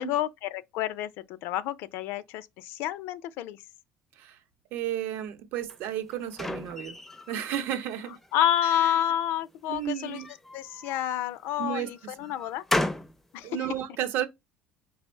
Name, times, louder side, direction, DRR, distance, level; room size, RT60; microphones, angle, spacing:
voice 1, 0.0-3.6 8.3-10.2 10.5-12.6 13.3-13.7, left 11 dB, 75° left, 0.4 m, -29 dB
voice 2, 4.7-7.0 7.3-8.2 8.8-8.9 9.7-10.3 11.6-11.9 13.4-14.3, right 10 dB, 70° right, 0.7 m, -32 dB
sound 1, 5.7-7.6 8.1-8.8 9.8-11.3 11.9-13.2, left 1 dB, 5° left, 0.4 m, -34 dB
5.1 x 2.0 x 4.3 m
cardioid pair, 120°, 4 cm